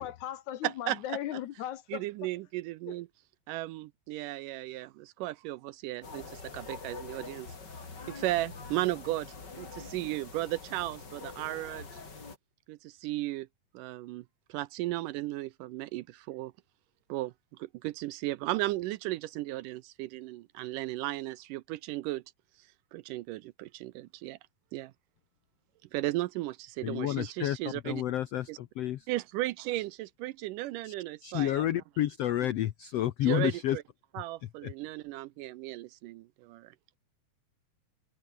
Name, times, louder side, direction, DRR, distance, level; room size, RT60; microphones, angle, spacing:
voice 1, 0.0-2.0 2.9-3.0, left 12 dB, 65° left, 2.1 m, -37 dB
voice 2, 0.6-1.2 1.9-3.1 3.5-7.5 8.1-9.3 9.6-11.9 12.7-13.5 13.7-14.2 14.5-16.5 17.1-17.3 17.6-22.2 22.9-24.4 24.7-24.9 25.9-28.0 28.5-28.6 29.1-31.6 33.3-33.8 34.2-36.7, right 17 dB, 80° right, 2.1 m, -35 dB
sound 1, 6.0-12.4, left 4 dB, 30° left, 3.6 m, -45 dB
voice 3, 26.8-29.1 30.8-30.9 31.2-33.8 34.4-34.7, left 13 dB, 85° left, 1.4 m, -30 dB
omnidirectional pair, 4.1 m